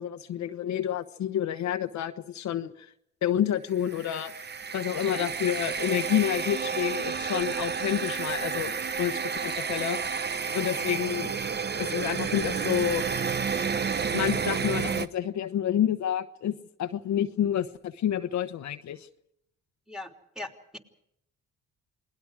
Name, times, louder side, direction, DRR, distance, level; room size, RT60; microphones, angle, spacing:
voice 1, 0.0-2.9 3.2-4.4 4.7-10.2 10.5-11.3 11.8-13.0 14.1-19.1, left 10 dB, 70° left, 8 dB, 1.1 m, -29 dB
sound 1, 3.8-15.1, right 6 dB, 35° right, 1.1 m, -30 dB
voice 2, 5.0-5.3 19.9-20.8, left 1 dB, ahead, 4 dB, 3.1 m, -41 dB
28.0 x 20.0 x 4.9 m, 0.77 s
cardioid pair, 90°, 30 cm